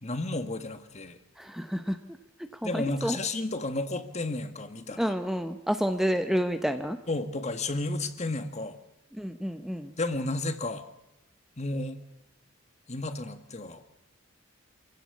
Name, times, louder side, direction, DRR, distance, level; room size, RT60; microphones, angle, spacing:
voice 1, 0.0-1.2 2.6-5.1 7.1-8.8 10.0-10.8 11.6-12.0 12.9-13.8, left 2 dB, 30° left, 9 dB, 1.8 m, -32 dB
voice 2, 1.4-2.0 2.4-3.2 5.0-7.0 9.1-9.9, equal, ahead, 7 dB, 0.9 m, -29 dB
27.0 x 16.0 x 8.4 m, 0.92 s
head